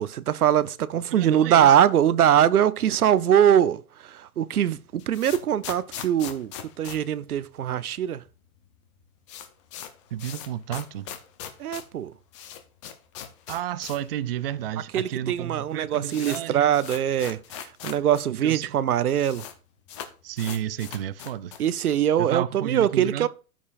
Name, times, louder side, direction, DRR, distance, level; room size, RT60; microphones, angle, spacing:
voice 1, 0.0-6.5 6.8-8.2 11.6-12.1 14.9-17.4 17.8-19.4 21.6-23.3, right 10 dB, 80° right, 0.7 m, -22 dB
voice 2, 1.1-1.9 10.1-11.1 13.5-16.7 18.3-18.8 20.2-21.5 22.2-23.3, right 11 dB, 45° right, 0.5 m, -31 dB
sound 1, 4.7-8.0 8.2-8.3 8.6-8.7 9.0-14.1 14.4-14.5 15.2-15.3 15.6-18.2 18.5-18.6 18.8-19.5 19.9-21.7, left 9 dB, 20° left, 0.6 m, -40 dB
13.5 x 5.4 x 2.4 m
hypercardioid pair, 140°, 44 cm